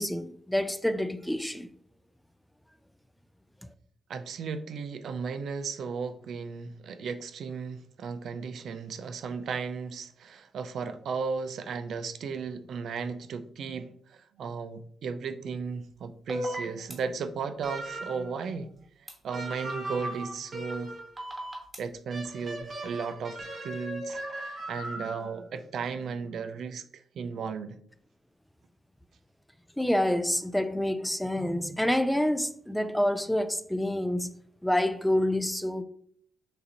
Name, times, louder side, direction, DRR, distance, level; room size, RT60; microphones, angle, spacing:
voice 1, 0.0-1.7 29.8-34.3 34.6-35.8, left 1 dB, 5° left, 0.3 m, -27 dB
voice 2, 4.1-18.7 19.2-20.9 21.8-26.8 27.1-27.7, right 5 dB, 70° right, 0.4 m, -35 dB
sound 1, 16.3-16.9 19.1-19.2 21.2-21.8, equal, 20° right, 1.4 m, -34 dB
sound 2, 17.6-18.3 19.3-21.2 22.1-25.3, right 1 dB, 45° right, 1.2 m, -38 dB
6.6 x 2.6 x 2.9 m
cardioid pair, 85°, 0 cm